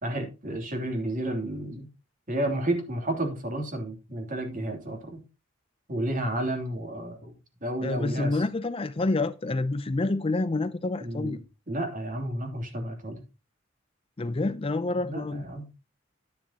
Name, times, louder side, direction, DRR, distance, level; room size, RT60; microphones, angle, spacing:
voice 1, 0.0-1.9 2.3-5.2 5.9-7.3 7.6-8.4 11.0-11.4 11.7-13.2 15.0-15.7, right 1 dB, 45° right, 3.0 m, -31 dB
voice 2, 7.8-11.4 14.2-15.5, left 2 dB, 30° left, 0.5 m, -28 dB
10.5 x 10.0 x 2.9 m
head